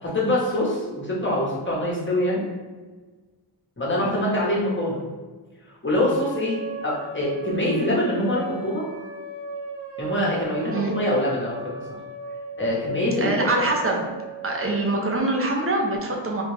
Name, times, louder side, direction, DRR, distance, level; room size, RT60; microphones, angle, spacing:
voice 1, 0.0-2.5 3.8-5.0 5.8-8.8 10.0-11.6 12.6-13.5, left 1 dB, 25° left, -5 dB, 1.2 m, -24 dB
sound 1, 6.0-15.0, right 4 dB, 90° right, 0.7 m, -36 dB
voice 2, 13.2-14.1 14.4-16.4, right 2 dB, 30° right, 1 dB, 0.7 m, -24 dB
3.6 x 2.4 x 3.2 m, 1.3 s
wide cardioid pair, 70°, 44 cm